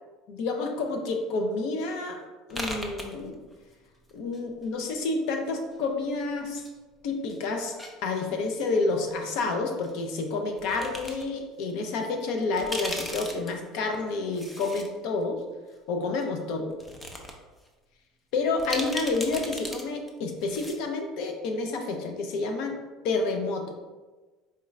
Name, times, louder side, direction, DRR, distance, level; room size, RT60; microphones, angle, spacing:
voice 1, 0.3-3.4 4.1-6.6 7.0-7.7 8.0-15.4 15.9-16.7 18.3-22.8 23.0-23.7, left 3 dB, 65° left, 4 dB, 0.6 m, -29 dB
sound 1, 2.5-3.7 4.0-5.0 5.7-6.7 7.0-8.6 9.8-9.9 10.6-11.2 11.7-11.8 12.4-14.9 15.2-15.3 16.2-16.3 16.7-17.3 17.7-17.8 18.6-19.8 20.1-20.2 20.4-20.8, left 1 dB, 10° left, 0.5 m, -37 dB
4.3 x 2.4 x 3.1 m, 1.2 s
cardioid pair, 140°, 0 cm